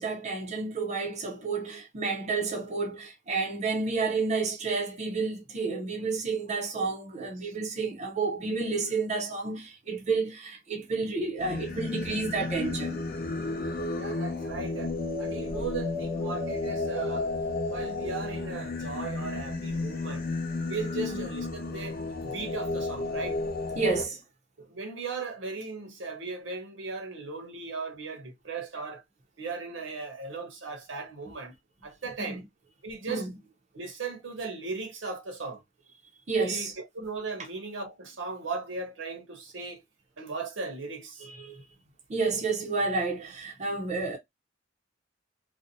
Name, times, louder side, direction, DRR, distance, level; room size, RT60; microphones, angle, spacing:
voice 1, 0.0-13.0 23.8-24.2 32.2-32.4 33.1-33.4 36.3-36.8 41.2-41.6 42.1-44.2, right 4 dB, 35° right, 0.5 m, -30 dB
Singing, 11.4-24.0, left 3 dB, 50° left, 0.5 m, -32 dB
voice 2, 14.0-14.9 15.2-17.3 17.7-20.3 20.7-22.0 22.2-23.4 24.7-29.0 29.4-31.5 31.8-32.4 32.8-33.2 33.7-35.6 36.4-39.8 40.2-41.3, right 4 dB, 80° right, 0.8 m, -37 dB
2.6 x 2.0 x 2.5 m
head